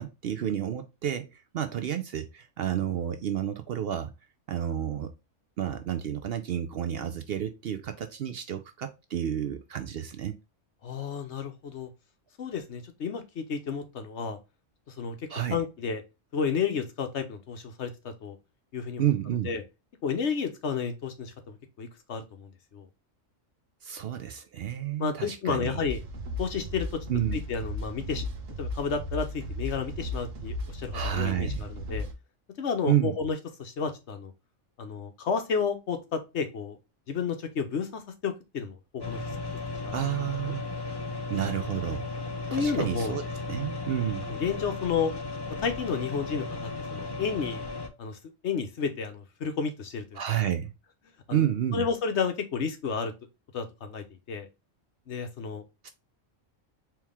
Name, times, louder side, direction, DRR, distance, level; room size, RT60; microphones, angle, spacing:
voice 1, 0.0-4.1 4.5-5.1 5.6-10.4 15.3-15.6 19.0-19.5 23.8-25.8 27.1-27.4 30.9-31.6 32.9-33.2 39.9-40.6 41.3-42.1 42.5-43.2 43.5-44.3 50.2-50.7 51.3-51.8 55.8-55.9, right 10 dB, 65° right, 0.7 m, -30 dB
voice 2, 10.8-11.9 12.4-14.4 14.9-15.2 15.5-16.0 16.3-18.4 18.7-19.1 19.4-19.6 20.0-22.9 25.0-26.0 26.4-27.0 27.3-28.3 28.6-32.1 32.6-34.3 34.8-36.8 37.1-39.2 39.8-39.9 40.5-40.6 42.5-43.1 44.3-45.1 45.6-47.6 48.0-48.2 48.4-50.2 51.3-53.1 53.5-54.5 55.1-55.6, left 6 dB, 65° left, 1.1 m, -31 dB
sound 1, 25.8-32.1, left 1 dB, 80° right, 1.3 m, -35 dB
sound 2, 39.0-47.9, left 3 dB, 25° left, 0.6 m, -35 dB
4.5 x 3.1 x 3.4 m
omnidirectional pair, 1.3 m